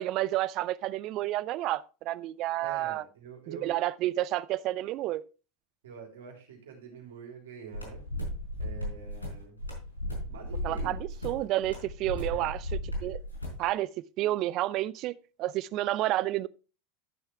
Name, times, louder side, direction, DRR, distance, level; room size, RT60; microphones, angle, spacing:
voice 1, 0.0-3.0 3.5-5.2 10.6-11.0 11.2-12.6 13.0-13.2 13.6-13.9 14.2-16.5, right 15 dB, 50° right, 0.5 m, -30 dB
voice 2, 2.6-3.7 5.8-8.0 8.6-9.6 10.2-11.0 12.1-12.5, right 6 dB, 70° right, 3.5 m, -46 dB
sound 1, 7.7-13.6, left 1 dB, 90° left, 4.3 m, -36 dB
12.0 x 6.6 x 3.4 m
figure-of-eight pair, 85°, 0 cm